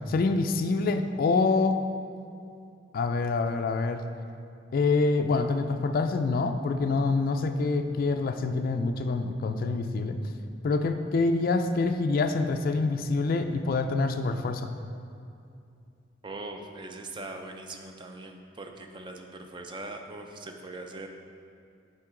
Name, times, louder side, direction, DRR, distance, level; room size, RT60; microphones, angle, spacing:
voice 1, 0.1-1.8 2.9-4.0 4.7-10.2 10.6-14.7, left 3 dB, 50° left, 6 dB, 0.3 m, -26 dB
voice 2, 16.2-21.1, right 2 dB, 25° right, 4 dB, 0.4 m, -41 dB
7.4 x 4.4 x 3.7 m, 2.5 s
head